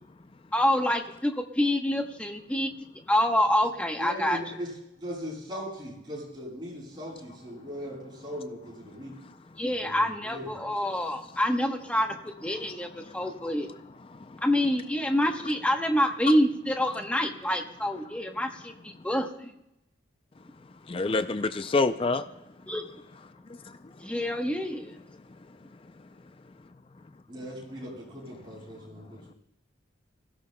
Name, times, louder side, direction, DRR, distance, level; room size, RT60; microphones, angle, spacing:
voice 1, 0.5-2.7 3.1-4.4 9.6-12.1 12.4-13.7 14.4-19.5 22.7-22.9 24.0-24.9, left 1 dB, 5° left, 1.0 m, -27 dB
voice 2, 4.0-4.7 5.0-9.1 9.7-10.6 27.3-29.4, equal, 25° right, 6.9 m, -39 dB
voice 3, 13.0-13.5 14.1-14.4 20.9-22.3 23.7-23.8, left 3 dB, 30° left, 0.4 m, -28 dB
26.5 x 16.0 x 2.2 m
head